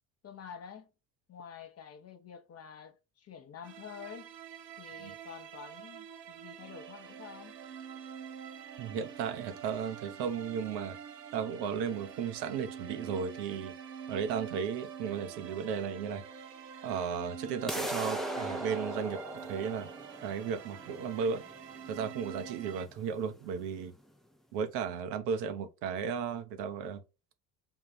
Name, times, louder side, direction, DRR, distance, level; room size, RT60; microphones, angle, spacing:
voice 1, 0.2-0.9 1.3-4.3 4.8-7.6, left 7 dB, 30° left, 0.7 m, -48 dB
sound 1, 3.6-22.9, right 7 dB, 90° right, 0.6 m, -46 dB
voice 2, 8.8-11.0 11.3-13.7 14.1-16.2 16.8-19.9 20.2-21.4 21.9-23.9 24.5-27.0, right 6 dB, 60° right, 0.8 m, -35 dB
sound 2, 17.7-23.7, right 1 dB, ahead, 0.5 m, -39 dB
3.7 x 2.4 x 4.3 m
hypercardioid pair, 60°, 47 cm